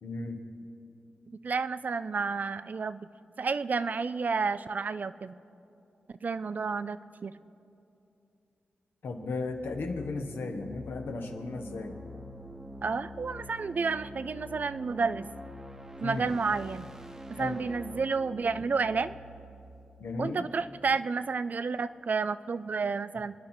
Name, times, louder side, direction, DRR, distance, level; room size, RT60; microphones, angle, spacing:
voice 1, 0.0-0.4 9.0-12.0 16.0-16.2 17.4-17.6 20.0-20.5, left 3 dB, 90° left, 4 dB, 1.4 m, -35 dB
voice 2, 1.3-3.1 3.4-5.3 6.2-7.3 12.8-15.3 16.0-16.9 17.3-19.1 20.2-23.3, right 4 dB, 50° right, 15 dB, 0.4 m, -31 dB
sound 1, 9.4-21.2, equal, 15° right, 1.0 m, -46 dB
26.5 x 10.5 x 4.4 m, 2.7 s
wide cardioid pair, 105°, 4 cm